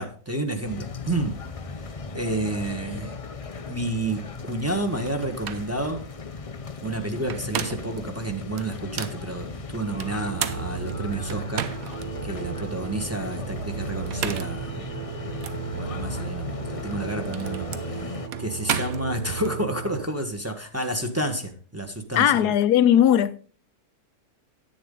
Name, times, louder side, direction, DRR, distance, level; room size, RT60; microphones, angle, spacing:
voice 1, 0.0-1.4 1.8-3.1 3.7-6.0 6.8-11.7 12.2-14.8 15.7-22.5, right 1 dB, 10° right, 1.3 m, -30 dB
sound 1, 0.6-18.3, left 4 dB, 50° left, 0.4 m, -37 dB
sound 2, 5.1-5.2 5.4-5.7 7.1-8.0 8.6-9.2 10.0-12.1 12.6-12.7 13.9-14.6 15.4-15.6 16.8-19.5, right 8 dB, 65° right, 1.2 m, -33 dB
sound 3, 9.9-20.0, right 7 dB, 35° right, 0.6 m, -35 dB
voice 2, 22.2-23.4, left 10 dB, 85° left, 1.2 m, -18 dB
10.5 x 9.2 x 3.8 m
omnidirectional pair, 1.7 m